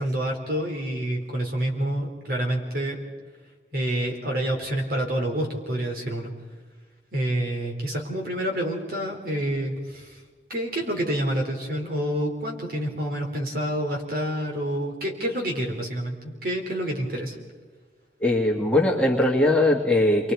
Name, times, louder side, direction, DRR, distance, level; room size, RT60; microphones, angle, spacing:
voice 1, 0.0-3.0 3.7-6.3 7.1-10.2 10.5-17.4, right 1 dB, 55° right, 1 dB, 4.0 m, -28 dB
voice 2, 18.2-20.3, left 1 dB, 5° left, -1 dB, 2.0 m, -20 dB
29.5 x 23.0 x 4.7 m, 1.4 s
head